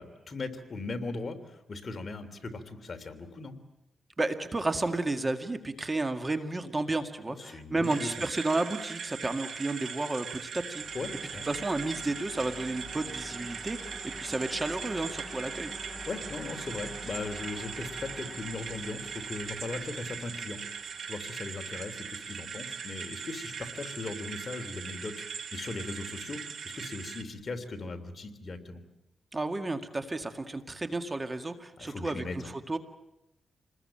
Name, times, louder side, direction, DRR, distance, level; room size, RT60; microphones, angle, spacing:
voice 1, 0.0-3.5 7.3-8.2 10.9-11.5 16.0-28.8 31.8-32.5, left 3 dB, 45° left, 6 dB, 3.2 m, -39 dB
voice 2, 4.2-10.8 11.4-15.7 29.3-32.8, right 2 dB, 25° right, 7 dB, 2.0 m, -32 dB
sound 1, 7.8-27.2, right 6 dB, 70° right, 2.3 m, -40 dB
sound 2, 10.7-22.3, equal, ahead, 3.0 m, -47 dB
28.5 x 20.5 x 8.9 m, 0.86 s
cardioid pair, 95°, 0 cm